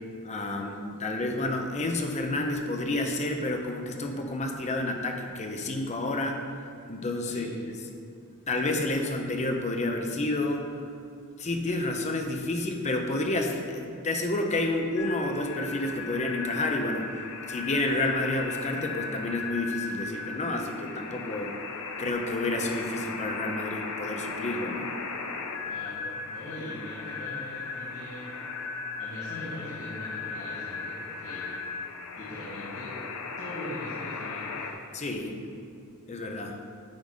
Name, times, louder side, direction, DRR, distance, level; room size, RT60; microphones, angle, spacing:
voice 1, 0.2-6.4 6.9-7.8 8.5-10.9 11.4-21.5 22.0-24.9 34.9-35.4 36.1-36.6, left 2 dB, 30° left, 3 dB, 0.7 m, -30 dB
sound 1, 15.0-34.7, left 4 dB, 80° left, 0.6 m, -37 dB
voice 2, 25.6-28.3 29.0-31.6 32.1-32.9 33.4-34.7, left 1 dB, 65° left, -11 dB, 1.8 m, -41 dB
8.8 x 4.0 x 4.9 m, 2.4 s
head